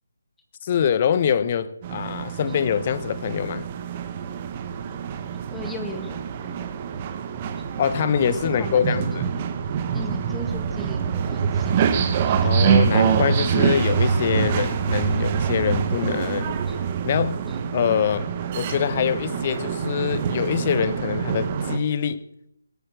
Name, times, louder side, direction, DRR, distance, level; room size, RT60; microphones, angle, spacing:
voice 1, 0.6-3.7 7.8-9.3 12.4-16.6 17.0-17.4 17.7-22.2, left 8 dB, 35° left, 0.8 m, -24 dB
sound 1, 1.8-21.8, right 7 dB, 30° right, 1.3 m, -25 dB
voice 2, 5.5-6.2 6.4-6.7 7.6-7.7 8.3-9.0 9.9-12.5 16.7-16.8 17.5-17.6, left 2 dB, 5° left, 1.7 m, -38 dB
21.0 x 8.9 x 6.3 m
figure-of-eight pair, 150°, 0 cm